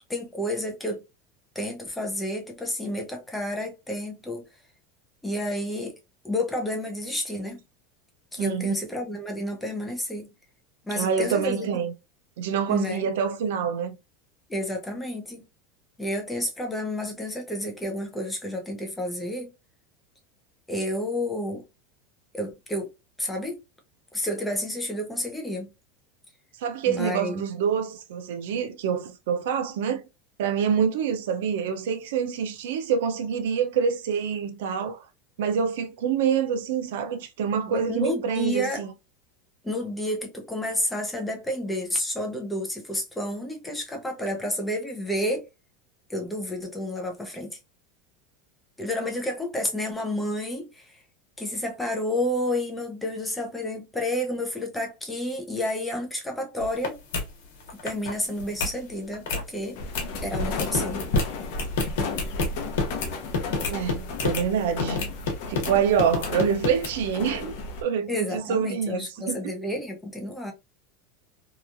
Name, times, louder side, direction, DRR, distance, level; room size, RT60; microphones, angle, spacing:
voice 1, 0.1-1.0 1.6-4.4 5.2-6.0 6.2-7.6 8.3-10.3 10.8-11.7 12.7-13.1 14.5-15.4 16.0-19.5 20.7-21.6 22.3-22.9 23.2-23.6 24.1-25.7 26.9-27.4 37.7-38.8 39.6-45.5 46.1-47.6 48.8-51.0 51.4-57.0 57.8-59.8 60.2-61.1 68.1-70.5, left 1 dB, 5° left, 0.5 m, -30 dB
voice 2, 8.4-8.7 10.9-11.9 12.4-14.0 26.6-30.0 30.4-35.0 35.4-38.9 63.7-65.0 65.5-67.5 67.8-69.6, right 7 dB, 80° right, 0.5 m, -26 dB
sound 1, 56.6-56.9 57.1-57.3 57.6-58.1 58.4-58.7 59.1-59.4 59.9-60.1 60.3-64.4 64.8-65.7 66.0-66.9, left 3 dB, 80° left, 1.0 m, -28 dB
sound 2, 59.8-67.8, left 3 dB, 55° left, 0.7 m, -33 dB
2.9 x 2.3 x 2.4 m
supercardioid pair, 170°, 0 cm